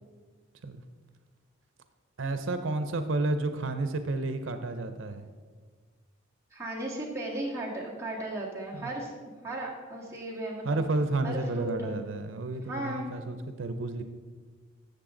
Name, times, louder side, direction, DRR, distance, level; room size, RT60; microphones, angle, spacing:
voice 1, 2.2-5.3 8.7-8.9 10.6-14.0, right 2 dB, 90° right, 9 dB, 0.6 m, -31 dB
voice 2, 6.5-10.8 11.2-12.0 12.7-13.1, right 1 dB, 15° right, -4 dB, 1.9 m, -36 dB
13.0 x 7.0 x 3.8 m, 1.5 s
head